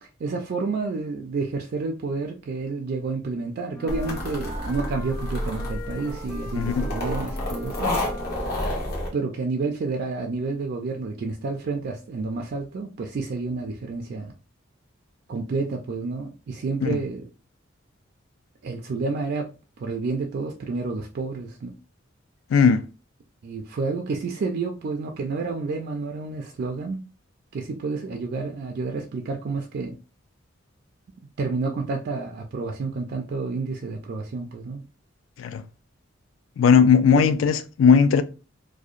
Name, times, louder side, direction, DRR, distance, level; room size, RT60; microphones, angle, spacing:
voice 1, 0.0-8.0 9.1-14.3 15.3-17.3 18.6-19.5 19.8-21.7 23.4-27.0 27.5-30.0 31.4-34.9 37.1-37.2, right 4 dB, 50° right, 0.3 m, -29 dB
Wind instrument woodwind instrument, 3.7-8.7, equal, 5° left, 0.5 m, -41 dB
sound 1, 3.9-9.1, left 1 dB, 50° left, 0.9 m, -30 dB
voice 2, 22.5-22.8 35.4-35.6 36.6-38.2, left 6 dB, 75° left, 0.3 m, -17 dB
2.7 x 2.1 x 2.4 m
head